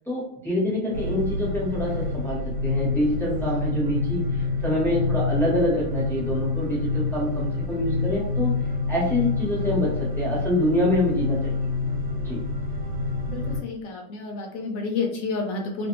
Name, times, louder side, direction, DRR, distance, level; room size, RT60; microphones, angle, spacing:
voice 1, 0.1-8.5 8.9-11.5 12.2-12.4, left 1 dB, ahead, -7 dB, 1.0 m, -26 dB
sound 1, 0.9-13.6, left 3 dB, 85° right, 1.3 m, -27 dB
voice 2, 13.3-15.9, left 4 dB, 70° left, 2 dB, 1.0 m, -30 dB
2.6 x 2.5 x 2.9 m, 0.69 s
omnidirectional pair, 1.6 m